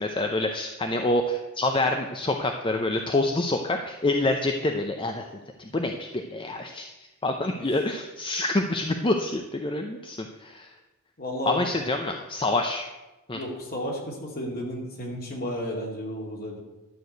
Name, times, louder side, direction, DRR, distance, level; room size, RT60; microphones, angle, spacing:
voice 1, 0.0-5.2 5.6-6.9 7.2-10.7 11.5-12.9 13.3-13.4, left 2 dB, 25° left, 4 dB, 0.6 m, -27 dB
voice 2, 11.2-11.6 13.3-16.6, left 1 dB, 45° left, -1 dB, 2.6 m, -33 dB
12.0 x 4.7 x 8.0 m, 1.1 s
head